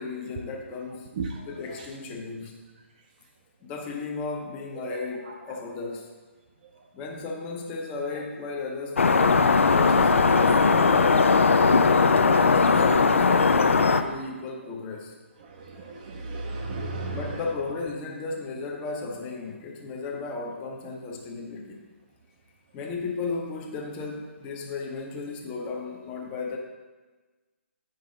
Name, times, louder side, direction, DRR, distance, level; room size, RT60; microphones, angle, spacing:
voice 1, 0.0-1.1 1.5-2.6 3.6-6.1 6.9-11.5 12.2-15.1 17.1-21.8 22.7-26.6, left 4 dB, 15° left, 0 dB, 0.8 m, -35 dB
voice 2, 1.2-1.5 4.9-5.0 15.6-17.4, right 3 dB, 35° right, 1 dB, 0.6 m, -34 dB
sound 1, 9.0-14.0, left 4 dB, 70° left, 0.5 m, -19 dB
8.7 x 5.5 x 3.9 m, 1.3 s
figure-of-eight pair, 150°, 7 cm